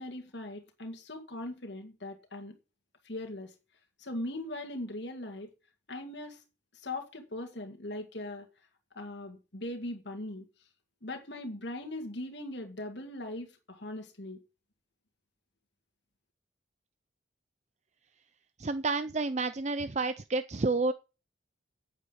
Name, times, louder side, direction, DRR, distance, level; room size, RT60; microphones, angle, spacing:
voice 1, 0.0-2.5 3.0-3.5 4.0-5.5 5.9-6.4 6.7-8.5 9.0-10.4 11.0-14.4, left 1 dB, 65° left, 2.1 m, -40 dB
voice 2, 18.6-20.9, right 3 dB, 35° right, 0.5 m, -30 dB
9.3 x 8.2 x 8.3 m
head